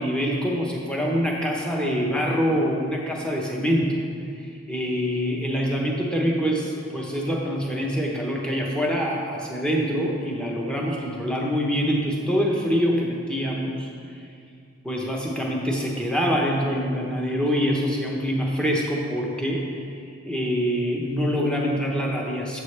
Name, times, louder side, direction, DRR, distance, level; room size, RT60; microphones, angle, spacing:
voice 1, 0.0-4.0 4.3-14.2 14.8-19.9 20.3-22.6, equal, 5° left, -2 dB, 0.8 m, -25 dB
8.3 x 7.3 x 3.3 m, 2.4 s
head